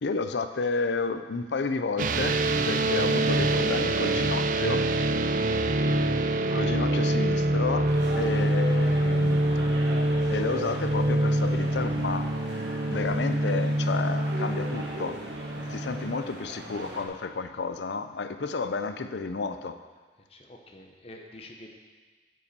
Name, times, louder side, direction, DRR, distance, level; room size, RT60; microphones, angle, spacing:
voice 1, 0.0-4.9 6.5-7.9 8.2-9.4 10.3-12.3 12.9-15.2 15.7-19.8, left 4 dB, 85° left, 10 dB, 0.6 m, -31 dB
sound 1, 2.0-16.2, right 1 dB, 50° right, 0.4 m, -25 dB
voice 2, 2.8-3.5 8.1-8.3 15.5-15.7 18.1-18.2 20.3-21.7, left 1 dB, 35° left, 2 dB, 1.0 m, -47 dB
sound 2, 7.8-17.0, right 1 dB, 90° right, 1.6 m, -39 dB
9.6 x 5.5 x 6.8 m, 1.4 s
head